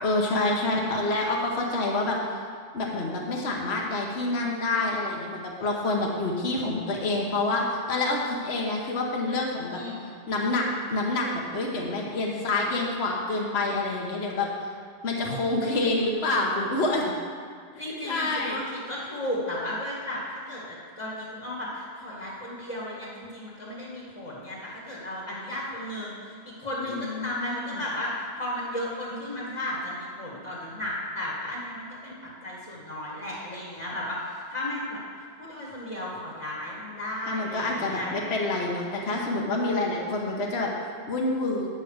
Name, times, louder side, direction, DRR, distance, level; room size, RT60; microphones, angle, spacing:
voice 1, 0.0-2.2 2.7-9.8 10.3-10.6 10.9-14.5 15.0-17.1 18.0-18.6 26.8-27.8 37.3-41.7, left 2 dB, 45° left, -2 dB, 1.0 m, -27 dB
voice 2, 0.6-0.9 9.7-10.0 17.8-32.1 32.4-35.0 35.4-38.1, left 1 dB, 20° left, -6 dB, 1.5 m, -34 dB
9.0 x 5.4 x 6.4 m, 2.1 s
omnidirectional pair, 1.9 m